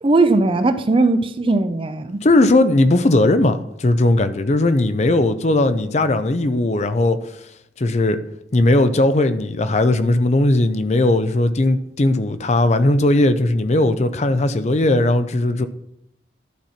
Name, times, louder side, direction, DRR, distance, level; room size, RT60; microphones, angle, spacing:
voice 1, 0.0-2.2, right 3 dB, 30° right, 0.5 m, -18 dB
voice 2, 2.2-7.2 7.8-8.2 8.5-15.7, left 2 dB, 40° left, 0.5 m, -17 dB
11.5 x 4.4 x 5.7 m
head